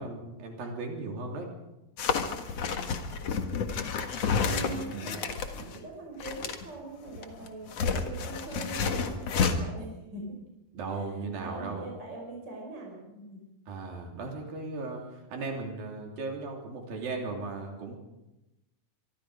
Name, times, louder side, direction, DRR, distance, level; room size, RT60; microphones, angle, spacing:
voice 1, 0.0-1.5 4.9-5.2 10.7-11.9 13.7-15.0 15.3-18.0, right 3 dB, 90° right, 2 dB, 4.9 m, -37 dB
sound 1, 2.0-5.8 6.2-6.7 7.1-9.5, left 5 dB, 50° left, 2.4 m, -30 dB
voice 2, 4.4-10.4 10.9-13.4, right 2 dB, 30° right, -1 dB, 5.7 m, -42 dB
25.0 x 24.0 x 5.0 m, 0.97 s
omnidirectional pair, 4.0 m